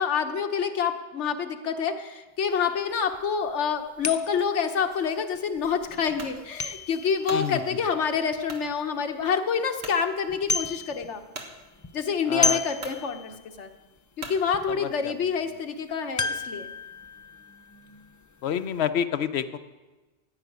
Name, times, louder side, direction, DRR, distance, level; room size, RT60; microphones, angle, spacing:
voice 1, 0.0-11.2 11.9-13.7 14.2-16.7, left 6 dB, 85° left, 6 dB, 1.2 m, -27 dB
sound 1, 2.5-2.6 3.1-3.2 4.0-8.7 9.2-9.3 9.6-10.0 10.2-11.4 11.6-13.6 14.0-14.1 14.5-14.7 16.2-18.6 18.8-18.9, left 3 dB, 30° left, 0.3 m, -32 dB
sound 2, 6.2-6.4 7.0-7.5 8.5-8.7 9.2-9.3 9.8-10.0 11.3-11.5 12.3-12.4 12.8-13.0 14.2-14.4, right 3 dB, 70° right, 1.7 m, -39 dB
voice 2, 7.3-7.6 12.3-12.6 14.8-15.1 18.4-19.6, left 9 dB, 70° left, 12 dB, 0.9 m, -28 dB
13.5 x 5.9 x 9.3 m, 1.2 s
omnidirectional pair, 1.2 m